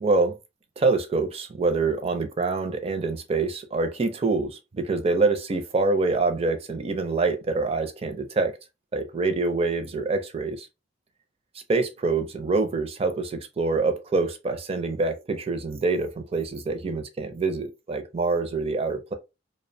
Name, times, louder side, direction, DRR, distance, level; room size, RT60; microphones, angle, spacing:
voice 1, 0.0-0.4 0.8-8.6 8.9-10.7 11.7-19.1, right 3 dB, 30° right, 0.5 m, -25 dB
2.4 x 2.1 x 2.6 m
head